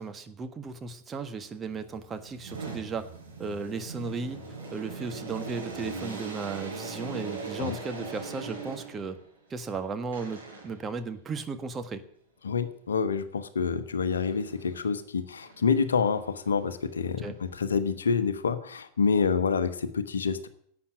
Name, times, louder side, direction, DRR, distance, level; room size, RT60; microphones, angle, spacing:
voice 1, 0.0-3.1 3.4-4.4 4.7-9.2 9.5-12.0 17.2-17.4, right 4 dB, 20° right, 8 dB, 1.5 m, -35 dB
sound 1, 1.6-9.2 10.1-10.9 14.1-14.9 15.4-17.8, right 4 dB, 70° right, 6.2 m, -41 dB
voice 2, 12.4-20.5, left 5 dB, 70° left, 12 dB, 1.1 m, -27 dB
11.5 x 8.7 x 9.9 m, 0.67 s
figure-of-eight pair, 90°, 0 cm